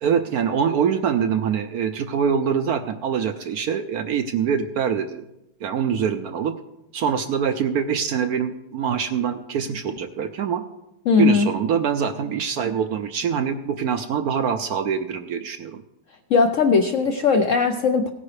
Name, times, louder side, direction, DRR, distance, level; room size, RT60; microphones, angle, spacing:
voice 1, 0.0-5.2 5.6-6.6 6.9-10.6 11.2-15.8, right 7 dB, 70° right, 8 dB, 0.9 m, -24 dB
voice 2, 11.1-11.5 16.3-18.1, left 5 dB, 70° left, 6 dB, 0.7 m, -18 dB
17.0 x 9.6 x 3.2 m, 0.91 s
omnidirectional pair, 2.0 m